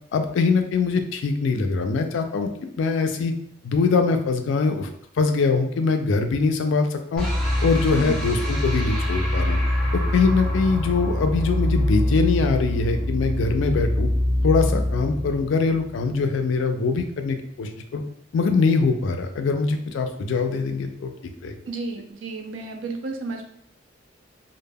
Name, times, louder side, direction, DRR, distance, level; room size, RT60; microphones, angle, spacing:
voice 1, 0.1-3.3 3.6-4.9 5.2-7.3 7.6-9.6 9.9-14.1 14.4-18.0 18.3-21.1 21.4-21.6, left 4 dB, 70° left, 6 dB, 0.3 m, -23 dB
sound 1, 7.2-16.3, left 1 dB, ahead, 0.5 m, -24 dB
voice 2, 21.7-23.4, right 3 dB, 75° right, 3 dB, 0.4 m, -32 dB
2.1 x 2.0 x 3.3 m, 0.70 s
head